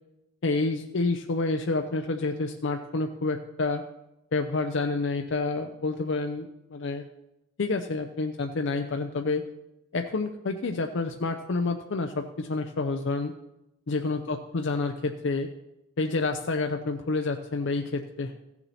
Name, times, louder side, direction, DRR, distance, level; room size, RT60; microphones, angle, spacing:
voice 1, 0.4-3.8 4.3-7.1 7.6-9.4 9.9-13.3 13.9-15.5 16.0-18.4, left 3 dB, 65° left, 5 dB, 0.6 m, -28 dB
15.0 x 7.1 x 4.2 m, 0.91 s
head